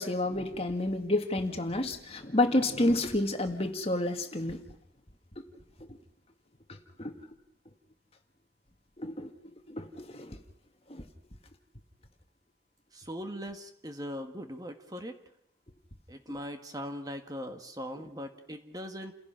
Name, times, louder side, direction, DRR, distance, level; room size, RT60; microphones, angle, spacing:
voice 1, 0.0-4.6 5.4-5.5 6.7-7.1 9.0-9.3 9.7-10.4 10.9-11.0, left 1 dB, 35° left, 6 dB, 2.0 m, -30 dB
voice 2, 12.9-15.2 16.1-19.1, equal, 20° right, 5 dB, 1.8 m, -40 dB
30.0 x 16.5 x 5.9 m, 0.75 s
head